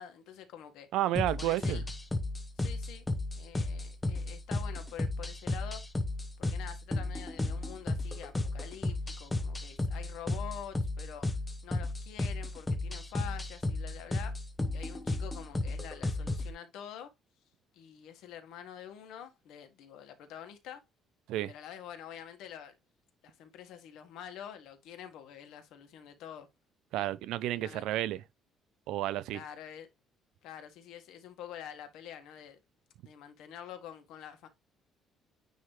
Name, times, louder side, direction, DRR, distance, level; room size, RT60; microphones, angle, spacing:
voice 1, 0.0-0.9 1.4-1.8 2.6-3.0 3.3-5.8 6.4-11.3 11.6-14.4 14.7-17.1 17.7-20.8 21.5-22.8 23.2-26.5 27.5-27.9 29.3-29.9 30.4-32.6 33.0-34.5, left 9 dB, 75° left, 1.5 m, -47 dB
voice 2, 0.9-1.8 21.3-21.5 26.9-28.2 28.9-29.4, right 14 dB, 80° right, 0.5 m, -31 dB
sound 1, 1.2-16.5, left 2 dB, 10° left, 0.8 m, -34 dB
9.5 x 3.2 x 3.2 m
cardioid pair, 165°, 0 cm